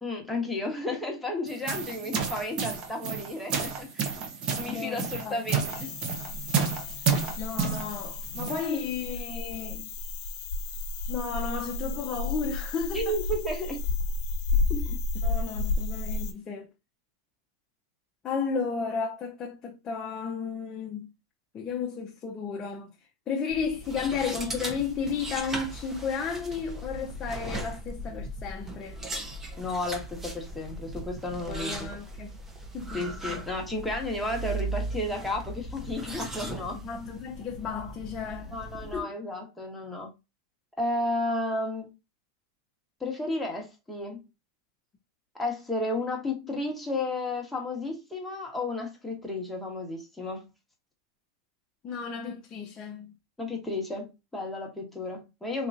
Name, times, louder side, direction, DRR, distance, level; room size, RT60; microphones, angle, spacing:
voice 1, 0.0-4.2 4.5-5.9 12.9-13.9 14.7-15.0 29.6-31.9 32.9-36.8 38.5-40.1 40.8-41.9 43.0-44.2 45.3-50.5 53.4-55.7, left 2 dB, 5° left, 1.3 m, -33 dB
sound 1, 1.5-8.7, right 6 dB, 35° right, 0.9 m, -31 dB
voice 2, 4.7-5.4 7.4-9.9 11.1-13.1 15.2-16.7 18.2-21.1 21.5-22.9 23.3-29.0 31.4-32.4 32.7-33.1 36.7-39.1 51.8-53.1, left 5 dB, 25° left, 0.7 m, -33 dB
sound 2, 5.7-16.3, left 3 dB, 50° left, 1.1 m, -32 dB
sound 3, 23.5-39.0, right 2 dB, 15° right, 0.9 m, -38 dB
3.8 x 3.0 x 2.5 m
supercardioid pair, 130°, 3 cm